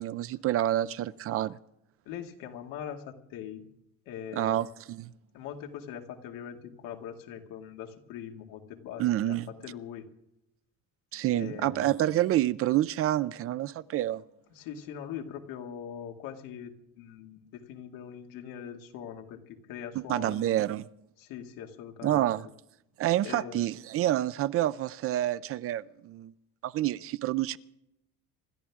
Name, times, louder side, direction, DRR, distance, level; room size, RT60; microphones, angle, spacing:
voice 1, 0.0-1.6 4.3-5.1 9.0-9.5 11.1-14.2 20.1-20.9 22.0-22.5 23.0-26.3 26.6-27.6, right 13 dB, 45° right, 0.5 m, -28 dB
voice 2, 2.1-3.6 4.1-4.7 5.3-9.4 9.6-10.1 11.3-11.9 14.5-20.6 21.2-22.3 23.2-23.7, left 9 dB, 90° left, 2.3 m, -42 dB
27.0 x 12.5 x 3.6 m
cardioid pair, 165°, 33 cm